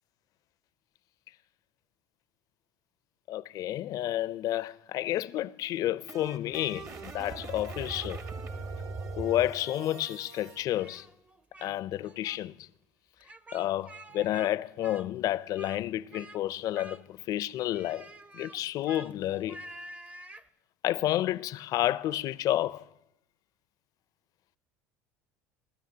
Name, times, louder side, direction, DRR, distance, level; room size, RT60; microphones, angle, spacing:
voice 1, 3.3-8.2 9.2-11.1 11.6-12.7 13.5-18.1 18.3-19.6 20.8-22.9, left 13 dB, 50° left, 0.4 m, -30 dB
sound 1, 5.6-10.6, right 3 dB, 40° right, 1.1 m, -41 dB
Speech, 10.8-11.7 12.0-12.4 13.2-14.5 14.8-15.8 16.1-16.4 16.7-17.3 17.7-20.5, right 1 dB, 15° right, 0.6 m, -48 dB
24.5 x 12.5 x 2.8 m
hypercardioid pair, 75°, 8 cm